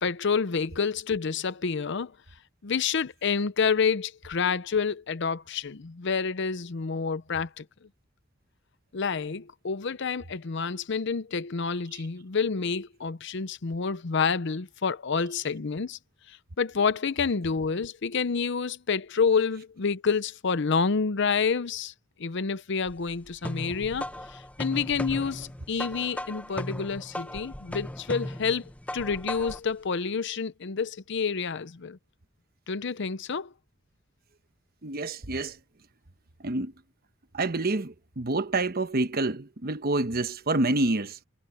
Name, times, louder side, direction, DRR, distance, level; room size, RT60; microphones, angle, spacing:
voice 1, 0.0-2.1 2.6-7.6 8.9-16.0 16.3-21.9 22.2-24.0 24.3-28.6 28.9-32.0 32.7-33.5, left 5 dB, 65° left, 0.7 m, -28 dB
sound 1, 22.9-29.7, left 1 dB, 5° left, 0.8 m, -37 dB
voice 2, 34.8-35.6 36.4-36.7 37.3-41.2, right 2 dB, 50° right, 1.1 m, -27 dB
head